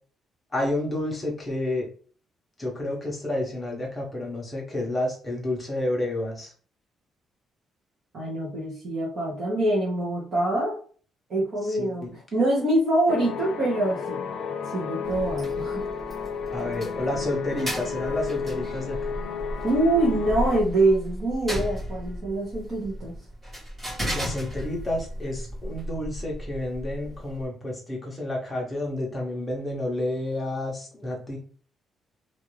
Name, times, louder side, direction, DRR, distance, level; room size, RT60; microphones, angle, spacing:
voice 1, 0.5-1.9 2.6-6.5 11.8-12.2 16.5-19.2 24.1-31.4, left 1 dB, 10° left, -2 dB, 0.8 m, -30 dB
voice 2, 8.1-10.8 11.3-14.2 14.6-15.8 19.6-23.2, right 1 dB, 35° right, -6 dB, 0.9 m, -25 dB
sound 1, 13.1-20.6, left 6 dB, 55° left, 0.3 m, -32 dB
sound 2, 15.0-27.4, equal, 20° right, 1.2 m, -35 dB
2.6 x 2.4 x 3.1 m, 0.42 s
cardioid pair, 175°, 0 cm